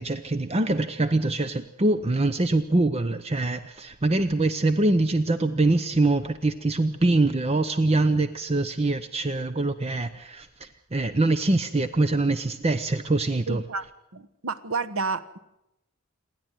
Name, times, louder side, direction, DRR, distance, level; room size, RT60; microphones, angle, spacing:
voice 1, 0.0-13.6, right 2 dB, 30° right, 12 dB, 0.7 m, -24 dB
voice 2, 13.5-13.9 14.1-15.4, right 4 dB, 75° right, 11 dB, 1.2 m, -30 dB
28.0 x 10.5 x 9.1 m, 0.88 s
head